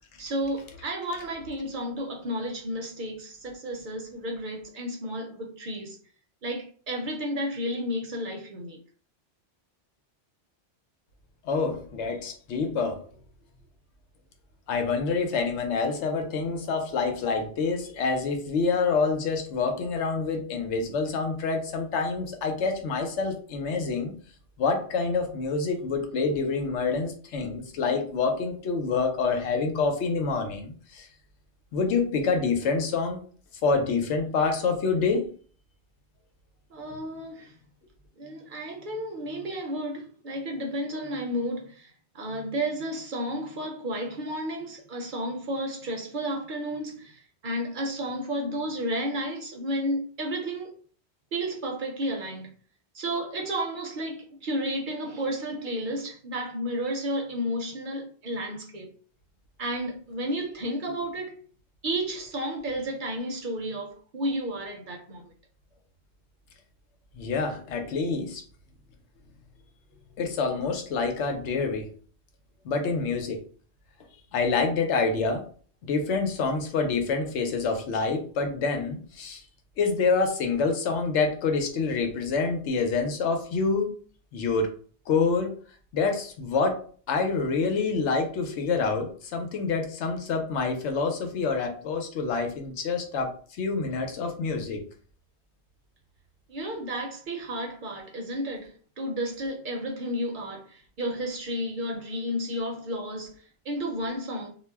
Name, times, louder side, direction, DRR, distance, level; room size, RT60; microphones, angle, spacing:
voice 1, 0.2-6.0 6.4-8.8 36.7-37.5 38.2-50.7 51.3-52.5 52.9-58.9 59.6-61.3 61.8-65.3 96.5-104.5, equal, 55° right, 0.7 m, -32 dB
voice 2, 11.4-13.0 14.7-24.1 24.6-31.1 31.7-33.2 33.6-35.3 67.1-68.4 70.2-71.9 72.6-73.4 74.3-75.4 75.8-79.4 79.8-83.9 84.3-84.7 85.1-85.5 85.9-94.8, left 4 dB, 85° left, 0.9 m, -27 dB
2.3 x 2.1 x 3.3 m
omnidirectional pair, 1.2 m